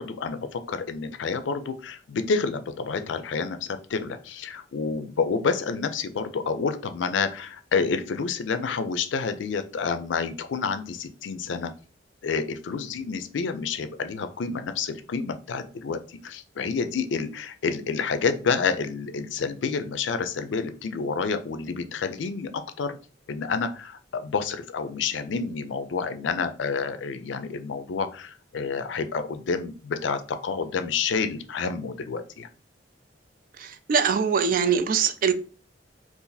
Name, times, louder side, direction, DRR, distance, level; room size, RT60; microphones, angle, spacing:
voice 1, 0.0-11.7 12.2-23.0 23.3-32.5, left 5 dB, 75° left, 0.4 m, -29 dB
voice 2, 33.6-35.3, right 6 dB, 45° right, 0.3 m, -23 dB
2.6 x 2.5 x 3.9 m
head